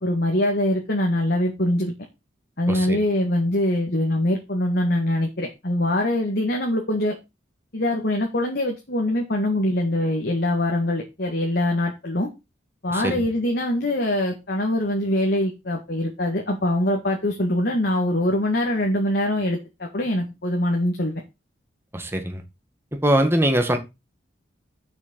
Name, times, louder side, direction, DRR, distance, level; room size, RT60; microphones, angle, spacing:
voice 1, 0.0-1.9 2.6-7.1 7.7-12.3 12.8-21.2, left 1 dB, 55° left, 1.9 m, -23 dB
voice 2, 2.7-3.0 12.9-13.2 21.9-22.4 23.0-23.8, right 1 dB, 10° right, 1.8 m, -22 dB
6.5 x 6.3 x 7.0 m
head